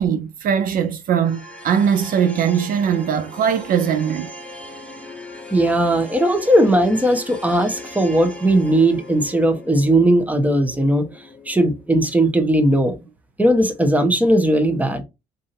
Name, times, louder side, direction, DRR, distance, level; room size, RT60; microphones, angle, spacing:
voice 1, 0.0-4.3, right 8 dB, 55° right, 0.6 m, -20 dB
sound 1, 1.2-12.3, left 1 dB, 5° left, 1.6 m, -39 dB
voice 2, 5.5-11.0 11.5-12.9 13.4-15.0, right 1 dB, 10° right, 1.1 m, -17 dB
3.9 x 3.6 x 2.7 m
cardioid pair, 110°, 17 cm